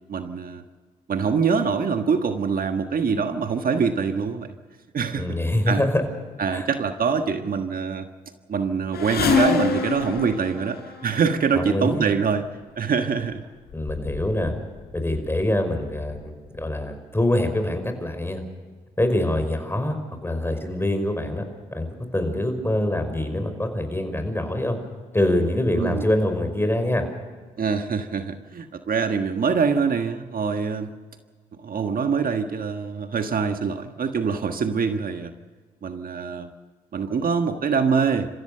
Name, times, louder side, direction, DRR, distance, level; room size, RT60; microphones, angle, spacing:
voice 1, 0.1-0.6 1.1-4.5 4.9-5.4 5.7-5.8 6.4-8.1 8.5-12.5 12.8-13.4 25.8-26.1 27.6-30.9 31.6-35.3 35.8-36.5 36.9-38.3, right 5 dB, 55° right, 7 dB, 1.6 m, -24 dB
voice 2, 5.2-6.0 6.5-6.7 11.5-12.1 13.7-14.5 14.9-18.4 19.0-21.4 21.7-24.8 25.1-27.0, left 1 dB, 15° left, 7 dB, 5.3 m, -24 dB
sound 1, 8.9-11.4 12.4-12.6 13.4-13.5 13.7-14.6 14.9-15.4 16.1-16.2 16.6-16.7, left 5 dB, 65° left, 4.3 m, -26 dB
28.5 x 15.5 x 6.8 m, 1.5 s
supercardioid pair, 50°, 18 cm